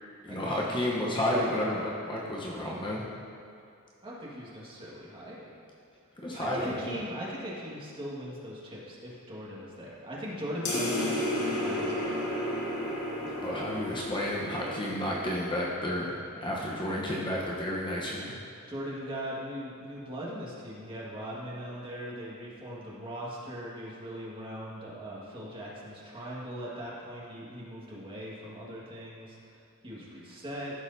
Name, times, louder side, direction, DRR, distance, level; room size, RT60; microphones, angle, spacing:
voice 1, 0.2-3.1 6.2-7.0 13.4-18.4, left 1 dB, 20° left, -4 dB, 0.9 m, -31 dB
voice 2, 4.0-5.5 6.4-12.2 18.7-30.8, equal, 25° right, -6 dB, 1.7 m, -40 dB
sound 1, 10.6-15.5, left 1 dB, 85° left, 1.8 m, -32 dB
14.5 x 6.4 x 2.7 m, 2.6 s
head